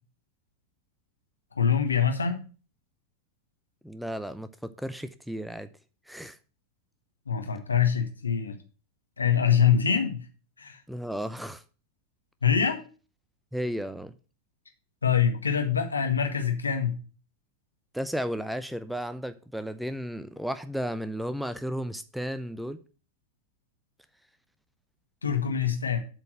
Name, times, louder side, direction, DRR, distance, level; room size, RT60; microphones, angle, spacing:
voice 1, 1.5-2.4 7.3-8.6 9.2-10.2 10.6-10.8 12.4-12.8 15.0-17.0 25.2-26.0, left 7 dB, 75° left, 1.5 m, -24 dB
voice 2, 3.8-5.7 6.1-6.4 10.9-11.6 13.5-14.1 17.9-22.8, equal, ahead, 0.5 m, -34 dB
7.9 x 4.6 x 6.4 m
figure-of-eight pair, 90°, 0 cm